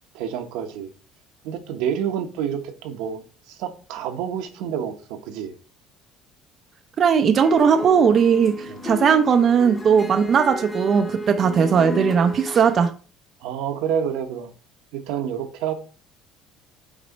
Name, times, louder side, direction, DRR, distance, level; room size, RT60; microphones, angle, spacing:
voice 1, 0.1-0.9 1.4-5.5 8.7-8.8 13.4-14.5 14.9-15.7, right 8 dB, 85° right, 1.0 m, -28 dB
voice 2, 7.0-12.9, right 7 dB, 45° right, 0.6 m, -18 dB
sound 1, 7.4-12.9, equal, 20° left, 1.4 m, -32 dB
6.1 x 4.1 x 4.1 m
cardioid pair, 115°, 0 cm